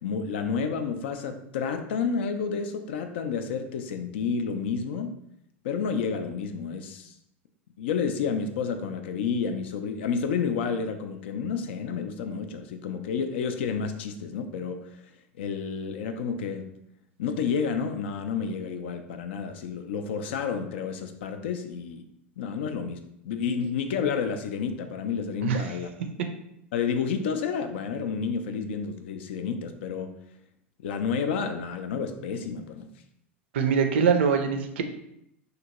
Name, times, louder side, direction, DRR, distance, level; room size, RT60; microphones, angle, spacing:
voice 1, 0.0-5.1 5.6-7.1 7.8-14.9 15.4-16.7 17.2-22.1 22.4-25.9 26.7-30.1 30.8-32.9, left 6 dB, 60° left, 7 dB, 0.3 m, -30 dB
voice 2, 33.5-34.8, right 6 dB, 60° right, 6 dB, 0.4 m, -23 dB
2.8 x 2.6 x 2.8 m, 0.77 s
figure-of-eight pair, 85°, 7 cm